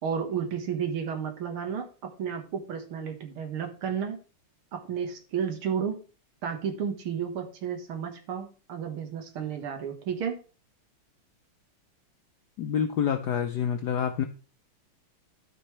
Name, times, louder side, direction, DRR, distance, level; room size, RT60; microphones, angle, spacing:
voice 1, 0.0-1.9 2.2-4.2 4.7-6.0 6.4-10.4, right 7 dB, 75° right, 5 dB, 2.2 m, -32 dB
voice 2, 12.6-14.2, left 8 dB, 80° left, 7 dB, 0.9 m, -27 dB
13.0 x 5.3 x 3.2 m, 0.36 s
omnidirectional pair, 2.4 m